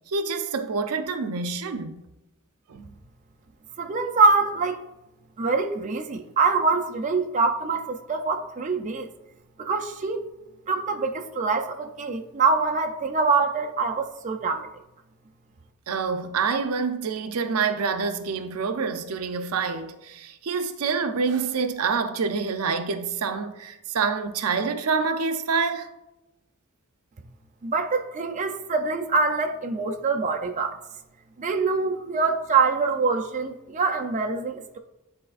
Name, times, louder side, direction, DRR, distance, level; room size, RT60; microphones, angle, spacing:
voice 1, 0.1-2.0 2.7-3.0 15.9-25.9, right 5 dB, 90° right, 0.5 m, -27 dB
voice 2, 3.8-4.8 5.4-9.1 9.6-10.2 10.7-14.7 27.6-30.8 31.4-34.8, right 4 dB, 35° right, 0.4 m, -24 dB
10.0 x 4.2 x 2.4 m
head